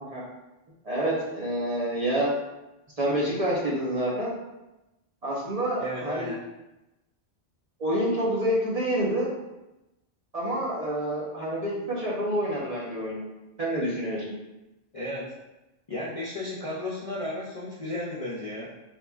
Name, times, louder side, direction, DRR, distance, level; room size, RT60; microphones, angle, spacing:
voice 1, 0.8-2.3 3.0-4.3 5.2-6.3 7.8-9.3 10.3-13.2 13.6-14.3, right 1 dB, 40° right, -6 dB, 0.8 m, -27 dB
voice 2, 5.8-6.4 14.9-15.3 15.9-18.8, left 1 dB, 45° left, -6 dB, 0.4 m, -34 dB
3.9 x 2.9 x 2.4 m, 0.98 s
omnidirectional pair, 1.1 m